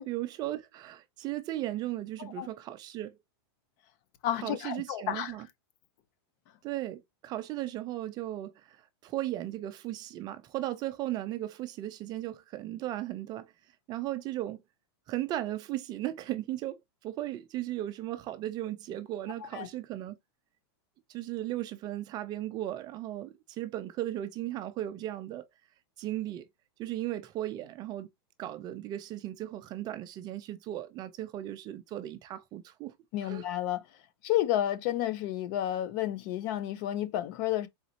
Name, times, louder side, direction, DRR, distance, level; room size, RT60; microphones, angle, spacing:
voice 1, 0.0-3.1 4.3-5.5 6.6-8.8 9.0-13.5 13.9-14.6 15.1-16.8 17.0-20.2 21.1-25.5 26.0-26.5 26.8-28.1 28.4-32.9 33.2-33.5, right 14 dB, 30° right, 0.5 m, -36 dB
voice 2, 4.2-5.3 19.5-19.7 33.1-33.8 34.2-37.7, left 12 dB, 45° left, 0.7 m, -31 dB
4.0 x 4.0 x 2.7 m
supercardioid pair, 145°, 14 cm